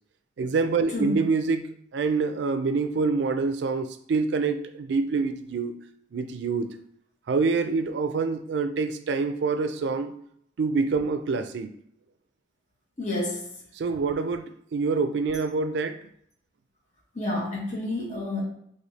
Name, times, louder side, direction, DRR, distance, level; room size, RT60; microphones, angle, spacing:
voice 1, 0.4-1.7 1.9-5.7 6.1-6.7 7.3-10.1 10.6-11.7 13.8-14.4 14.7-16.0, right 4 dB, 75° right, 9 dB, 0.4 m, -26 dB
voice 2, 13.0-13.5 17.1-18.4, left 2 dB, 40° left, -5 dB, 1.2 m, -29 dB
3.3 x 2.7 x 4.0 m, 0.68 s
head